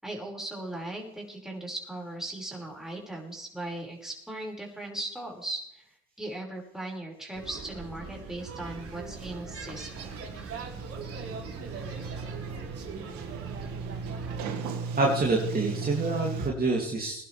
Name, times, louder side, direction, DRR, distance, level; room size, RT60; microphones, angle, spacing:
voice 1, 0.0-5.8 6.2-9.9, right 1 dB, ahead, -2 dB, 5.6 m, -38 dB
sound 1, 7.3-14.4, right 4 dB, 45° right, 4.1 m, -41 dB
Sliding door, 8.6-16.5, right 5 dB, 65° right, 2.1 m, -37 dB
voice 2, 15.0-17.2, right 3 dB, 30° right, -2 dB, 2.9 m, -27 dB
22.5 x 11.0 x 3.5 m, 0.75 s
supercardioid pair, 80°, 32 cm